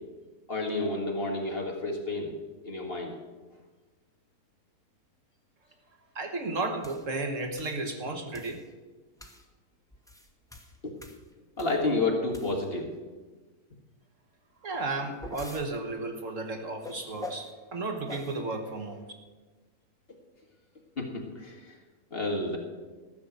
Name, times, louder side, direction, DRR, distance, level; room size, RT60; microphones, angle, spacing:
voice 1, 0.5-2.4 2.7-3.1 11.6-12.9 21.0-21.6 22.1-22.6, left 2 dB, 40° left, 0 dB, 2.1 m, -30 dB
voice 2, 6.2-8.6 14.6-19.1, right 3 dB, 60° right, 4 dB, 1.6 m, -33 dB
sound 1, 6.8-7.0 7.6-7.8 8.3-8.6 9.2-9.5 9.9-11.9 12.3-12.8 14.7-15.7 16.8-17.5 18.1-18.4, left 1 dB, 5° left, 1.0 m, -44 dB
14.0 x 6.7 x 8.1 m, 1.3 s
omnidirectional pair, 1.6 m